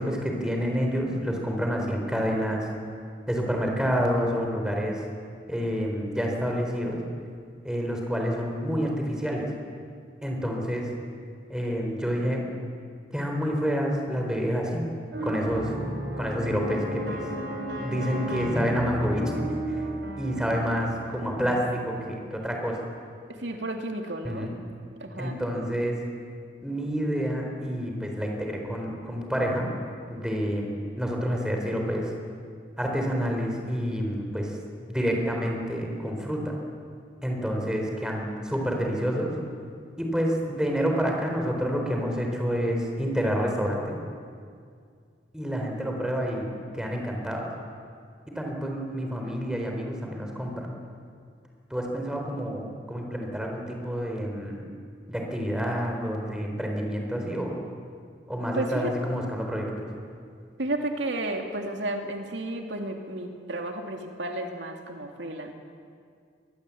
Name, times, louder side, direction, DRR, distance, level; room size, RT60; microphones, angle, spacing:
voice 1, 0.0-2.7 3.3-5.0 5.5-7.0 7.6-9.5 10.2-10.9 11.5-12.4 13.1-14.8 15.2-15.7 16.2-17.2 17.7-19.8 20.2-22.8 24.2-24.6 25.2-26.0 26.6-29.7 30.1-32.1 32.8-34.5 34.9-36.5 37.2-39.4 40.0-44.0 45.3-47.4 48.4-50.7 51.7-54.6 55.1-57.6 58.3-59.9, equal, 5° right, 1 dB, 4.1 m, -28 dB
sound 1, 15.1-21.8, right 1 dB, 65° right, 5.5 m, -33 dB
voice 2, 23.3-24.5 25.0-25.4 58.5-59.0 60.6-65.5, right 1 dB, 80° right, 3 dB, 2.4 m, -32 dB
23.0 x 20.0 x 8.5 m, 2.2 s
head